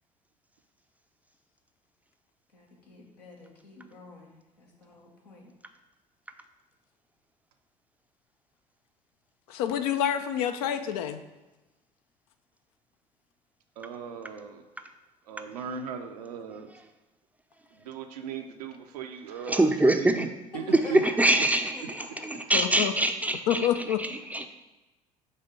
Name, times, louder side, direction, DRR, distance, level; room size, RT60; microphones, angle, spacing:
voice 1, 2.5-5.5 20.5-22.3, left 2 dB, 85° left, -3 dB, 1.3 m, -45 dB
voice 2, 9.5-11.2 22.5-22.9 23.5-24.0, left 10 dB, 65° left, 8 dB, 0.5 m, -27 dB
voice 3, 13.8-14.6 15.3-16.7 17.7-20.2 20.5-20.6 20.9-21.0, right 7 dB, 75° right, 5 dB, 0.6 m, -38 dB
voice 4, 19.5-20.3 20.7-24.5, right 1 dB, 5° right, 6 dB, 0.5 m, -24 dB
5.4 x 3.5 x 5.1 m, 1.1 s
figure-of-eight pair, 60°, 20 cm